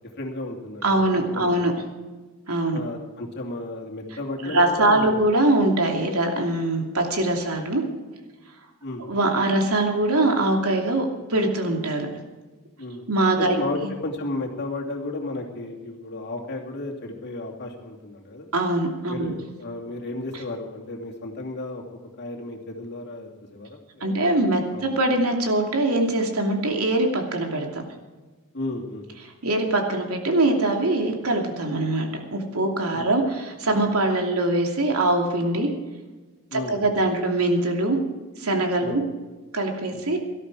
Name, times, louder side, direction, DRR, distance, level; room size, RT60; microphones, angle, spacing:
voice 1, 0.2-1.5 2.7-5.3 6.8-6.9 8.8-9.1 12.8-13.1 13.4-18.5 19.1-21.8 22.2-24.2 24.7-24.9 28.5-29.0 32.9-33.1 36.5-37.0 38.8-39.0 39.9-40.0, left 2 dB, 50° left, 0 dB, 2.8 m, -33 dB
voice 2, 0.8-1.7 2.5-2.8 4.4-7.8 9.1-12.1 13.1-13.6 18.5-19.3 24.0-27.8 29.4-35.7 36.5-38.0 38.4-39.0 39.5-40.2, right 2 dB, 80° right, 2 dB, 2.8 m, -22 dB
18.0 x 13.0 x 4.9 m, 1.3 s
head